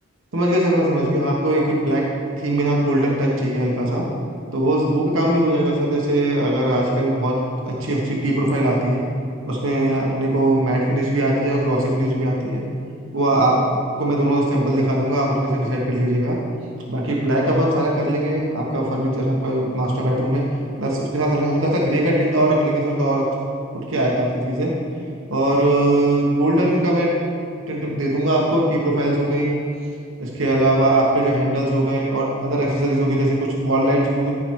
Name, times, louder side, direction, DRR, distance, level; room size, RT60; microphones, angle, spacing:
voice 1, 0.3-2.1 2.4-4.1 4.5-9.0 9.4-12.6 13.1-16.4 16.9-20.5 20.8-23.3 23.7-24.7 25.3-27.1 27.7-29.6 30.2-34.3, right 1 dB, 70° right, -3 dB, 1.2 m, -20 dB
14.0 x 4.9 x 4.7 m, 2.5 s
head